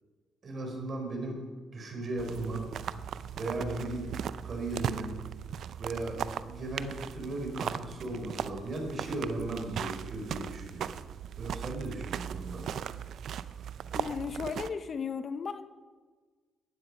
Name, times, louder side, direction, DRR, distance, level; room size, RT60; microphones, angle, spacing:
voice 1, 0.4-1.4 1.7-2.6 3.3-4.1 4.4-5.1 5.8-10.9 11.4-12.6, right 2 dB, 45° right, 1 dB, 4.4 m, -36 dB
sound 1, 2.2-14.7, right 9 dB, 70° right, 0.5 m, -38 dB
voice 2, 13.9-15.8, left 6 dB, 50° left, 12 dB, 0.7 m, -35 dB
15.0 x 10.0 x 5.4 m, 1.5 s
cardioid pair, 90°, 0 cm